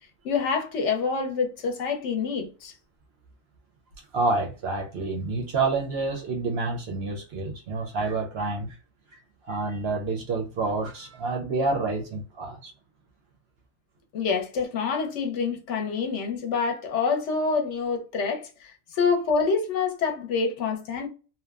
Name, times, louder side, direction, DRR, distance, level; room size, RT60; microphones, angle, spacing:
voice 1, 0.2-2.7 14.1-21.1, left 5 dB, 65° left, 0.9 m, -27 dB
voice 2, 4.1-8.8 9.1-12.7, right 3 dB, 65° right, 0.7 m, -28 dB
2.8 x 2.1 x 2.3 m
omnidirectional pair, 1.4 m